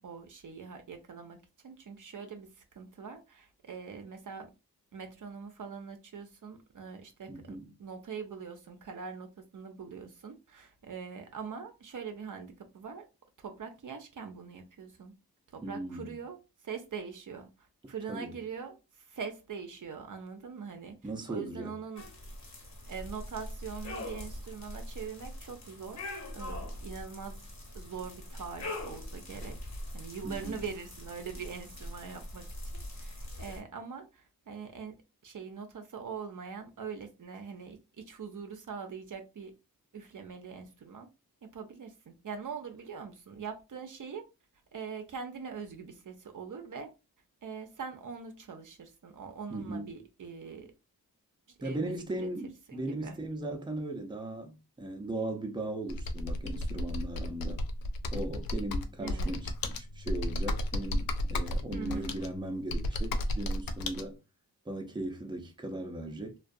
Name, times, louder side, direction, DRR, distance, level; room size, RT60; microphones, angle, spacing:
voice 1, 0.0-4.5 4.9-13.0 13.4-15.1 15.5-17.5 17.9-18.8 19.1-22.0 22.9-26.0 26.3-27.5 27.7-29.6 29.9-32.5 32.9-39.5 39.9-41.1 41.4-44.3 44.7-46.9 47.4-50.7 51.6-52.3 52.7-53.2 59.0-59.3 61.7-62.2, right 6 dB, 55° right, 0.6 m, -43 dB
voice 2, 7.3-7.7 15.6-16.2 18.1-18.3 21.0-21.8 30.2-30.6 49.5-49.9 51.6-57.6 58.1-64.2 64.7-66.4, right 1 dB, 10° right, 0.6 m, -38 dB
sound 1, 21.9-33.6, left 1 dB, 45° left, 1.0 m, -42 dB
Computer keyboard, 55.9-64.0, left 1 dB, 65° left, 0.5 m, -33 dB
2.4 x 2.3 x 2.6 m
cardioid pair, 60°, 37 cm